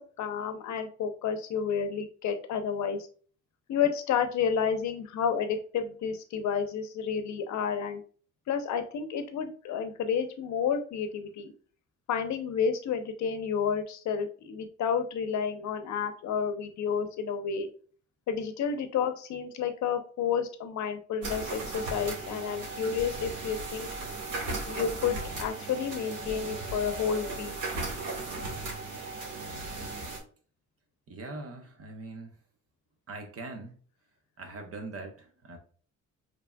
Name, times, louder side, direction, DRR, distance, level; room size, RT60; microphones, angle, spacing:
voice 1, 0.2-3.1 3.7-8.0 8.5-11.5 12.1-17.7 18.3-23.9 24.7-27.6, left 7 dB, 70° left, 8 dB, 0.7 m, -30 dB
sound 1, 21.2-30.2, right 2 dB, 80° right, 1.6 m, -36 dB
voice 2, 31.1-32.3 33.1-33.8 34.4-35.6, right 3 dB, 50° right, 4 dB, 1.1 m, -41 dB
5.1 x 3.0 x 2.3 m, 0.43 s
cardioid pair, 90°, 30 cm